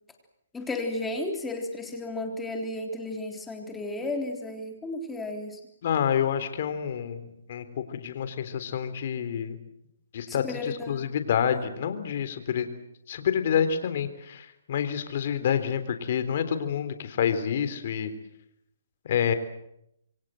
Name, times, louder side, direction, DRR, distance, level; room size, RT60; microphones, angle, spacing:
voice 1, 0.5-5.6 10.3-11.1 11.5-11.6, left 2 dB, 5° left, 3 dB, 3.6 m, -33 dB
voice 2, 5.8-9.6 10.1-12.7 13.1-18.1 19.0-19.3, left 8 dB, 45° left, 10 dB, 3.6 m, -28 dB
27.5 x 24.0 x 7.8 m, 0.80 s
hypercardioid pair, 160°, 0 cm